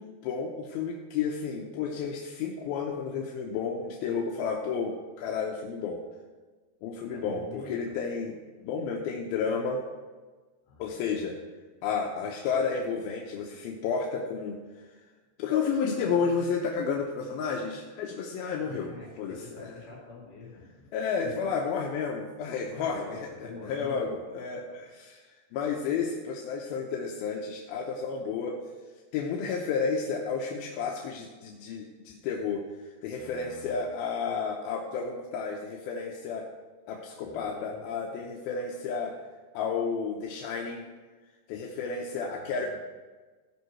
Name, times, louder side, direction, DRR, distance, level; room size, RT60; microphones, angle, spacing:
voice 1, 0.0-6.0 6.8-9.8 10.8-11.4 11.8-14.6 15.4-19.7 20.9-23.2 23.7-24.6 25.0-25.2 25.5-28.6 29.1-36.5 36.9-39.1 39.5-40.9 41.5-42.7, left 5 dB, 75° left, 0 dB, 2.6 m, -31 dB
voice 2, 7.1-8.1 10.6-11.0 18.6-20.9 21.2-21.3 22.6-24.2 24.5-24.8 33.1-33.8 37.2-37.8 42.3-42.7, left 3 dB, 55° left, -2 dB, 4.6 m, -45 dB
16.0 x 5.5 x 6.0 m, 1.3 s
omnidirectional pair, 4.7 m